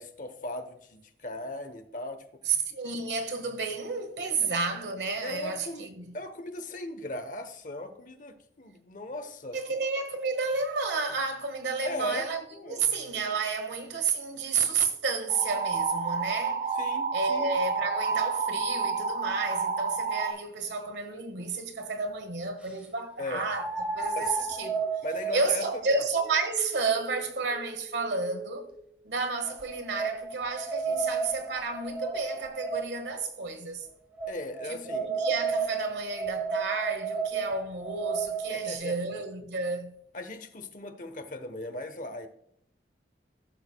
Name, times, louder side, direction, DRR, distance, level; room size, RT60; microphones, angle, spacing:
voice 1, 0.0-2.2 5.2-9.6 11.8-12.8 16.8-17.5 23.2-23.4 24.1-24.3 25.0-26.0 34.3-35.1 38.5-38.9 40.1-42.3, left 1 dB, 45° left, 1.0 m, -38 dB
voice 2, 2.4-6.1 9.5-16.7 17.1-24.9 25.3-28.7 29.0-33.9 34.7-40.0, right 4 dB, 80° right, 1.5 m, -31 dB
sound 1, 15.3-20.3, right 5 dB, 40° right, 0.8 m, -29 dB
sound 2, 20.9-21.0 23.5-28.7 29.4-33.2 34.2-38.8, right 4 dB, 10° right, 1.6 m, -33 dB
15.0 x 6.4 x 2.3 m
head